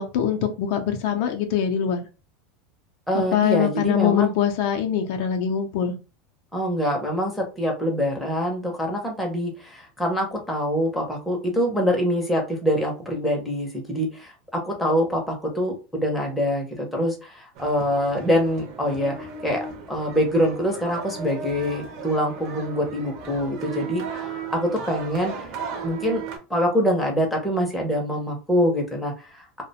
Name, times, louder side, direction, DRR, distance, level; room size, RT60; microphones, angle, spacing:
voice 1, 0.0-2.1 3.3-6.0, left 8 dB, 55° left, 5 dB, 0.4 m, -23 dB
voice 2, 3.1-4.3 6.5-25.3 25.8-26.2 26.5-29.6, equal, ahead, 0 dB, 0.5 m, -25 dB
sound 1, 17.6-26.4, right 5 dB, 45° right, 0.5 m, -36 dB
2.4 x 2.0 x 2.7 m, 0.32 s
supercardioid pair, 175°, 0 cm